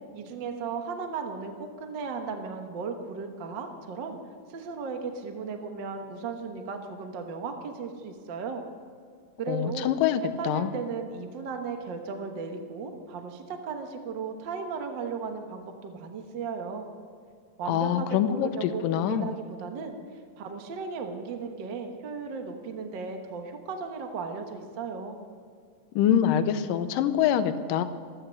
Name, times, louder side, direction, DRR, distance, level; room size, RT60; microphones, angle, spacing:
voice 1, 0.1-4.2 4.5-8.6 9.4-9.9 10.4-16.9 17.6-20.0 20.3-25.2, right 5 dB, 60° right, 4 dB, 1.2 m, -36 dB
voice 2, 9.5-10.7 17.7-19.3 26.0-27.8, left 9 dB, 85° left, 10 dB, 2.4 m, -25 dB
14.5 x 14.0 x 6.3 m, 2.2 s
omnidirectional pair, 3.9 m